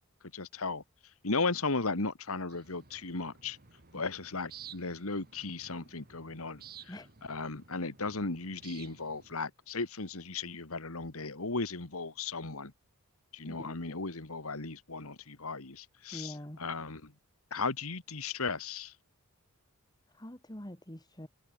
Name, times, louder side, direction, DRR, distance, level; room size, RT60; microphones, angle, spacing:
voice 1, 0.3-3.6 3.9-12.7 13.3-17.1 17.5-19.0, left 3 dB, 70° left, 1.9 m, -36 dB
sound 1, 2.5-9.4, right 8 dB, 45° right, 2.2 m, -54 dB
voice 2, 13.4-13.8 16.1-16.6 20.2-21.3, left 1 dB, 20° left, 2.2 m, -44 dB
head